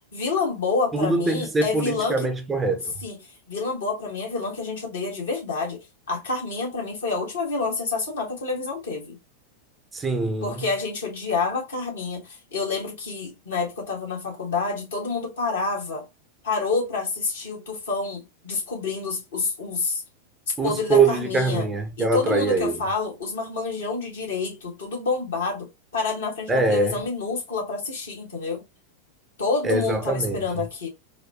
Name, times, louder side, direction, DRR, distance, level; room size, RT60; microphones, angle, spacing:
voice 1, 0.1-2.3 3.0-3.2 3.5-5.8 6.1-9.2 10.4-16.0 16.4-20.0 20.6-21.7 22.0-25.7 25.9-28.6 29.4-30.9, left 4 dB, 65° left, 1.6 m, -28 dB
voice 2, 0.9-2.9 9.9-10.5 20.6-22.8 26.5-26.9 29.6-30.4, right 3 dB, 15° right, 0.5 m, -23 dB
4.0 x 2.2 x 2.7 m
figure-of-eight pair, 90°, 0 cm